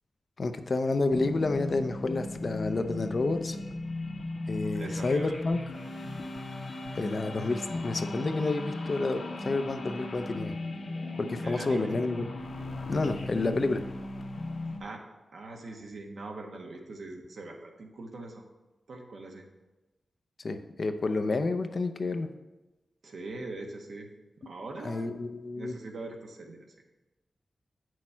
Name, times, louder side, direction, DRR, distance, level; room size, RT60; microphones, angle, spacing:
voice 1, 0.4-3.6 4.5-5.6 7.0-10.5 11.2-12.3 12.9-13.8 20.4-22.3 24.8-25.8, left 3 dB, 45° left, 8 dB, 0.6 m, -29 dB
sound 1, 1.1-14.8, left 2 dB, 85° left, 1.2 m, -37 dB
voice 2, 4.7-5.4 11.4-11.9 14.8-15.0 15.3-18.4 18.9-19.4 23.0-24.1 24.4-25.2 25.6-26.6, right 2 dB, 75° right, 2 dB, 1.2 m, -42 dB
8.5 x 6.3 x 4.4 m, 1.1 s
wide cardioid pair, 120°, 0 cm